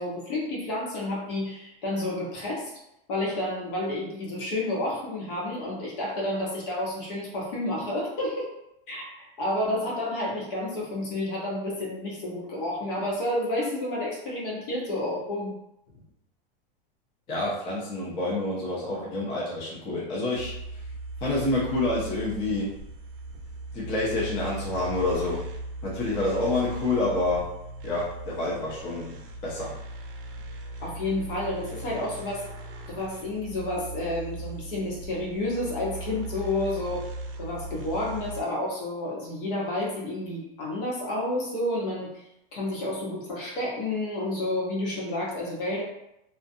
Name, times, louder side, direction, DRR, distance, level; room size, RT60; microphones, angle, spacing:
voice 1, 0.0-2.7 3.1-8.5 8.9-15.6 30.8-32.4 32.9-37.1 37.4-42.2 42.5-45.8, left 1 dB, 65° left, -4 dB, 1.1 m, -30 dB
voice 2, 17.3-20.9 21.2-22.8 23.7-25.5 25.8-27.5 27.8-29.7, left 2 dB, 20° left, -6 dB, 0.4 m, -28 dB
sound 1, 20.3-38.4, right 2 dB, 70° right, 0.5 m, -38 dB
2.3 x 2.2 x 2.6 m, 0.84 s
supercardioid pair, 155°, 29 cm